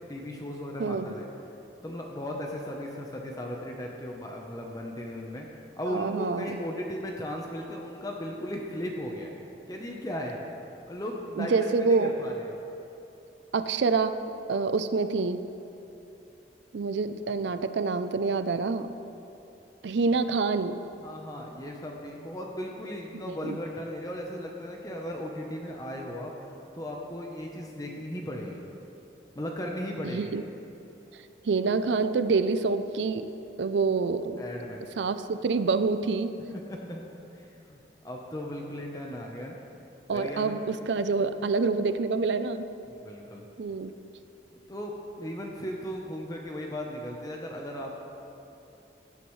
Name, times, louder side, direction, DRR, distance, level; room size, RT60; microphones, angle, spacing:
voice 1, 0.1-1.3 1.8-5.5 5.8-9.3 9.7-10.4 10.9-12.5 21.0-26.3 26.7-28.6 29.3-30.3 34.4-34.8 36.5-37.0 37.3-37.8 38.0-39.6 40.1-40.6 43.0-43.5 44.7-48.0, equal, 20° left, 0 dB, 0.8 m, -36 dB
voice 2, 0.8-1.1 5.8-6.6 11.4-12.1 13.5-14.2 14.5-15.4 16.7-18.9 19.8-20.9 23.3-23.6 30.0-30.4 31.4-33.3 33.6-34.4 35.0-36.3 40.1-42.6 43.6-43.9, right 4 dB, 80° right, 11 dB, 0.5 m, -27 dB
17.0 x 10.5 x 3.2 m, 2.9 s
head